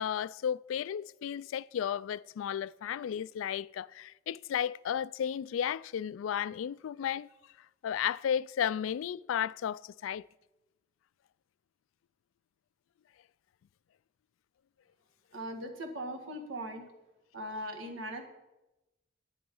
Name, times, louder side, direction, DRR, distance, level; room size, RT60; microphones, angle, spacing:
voice 1, 0.0-7.3 7.8-10.3, left 9 dB, 85° left, 0.3 m, -33 dB
voice 2, 15.3-16.8 17.3-18.2, right 1 dB, 85° right, 1.8 m, -39 dB
10.5 x 9.8 x 5.4 m
head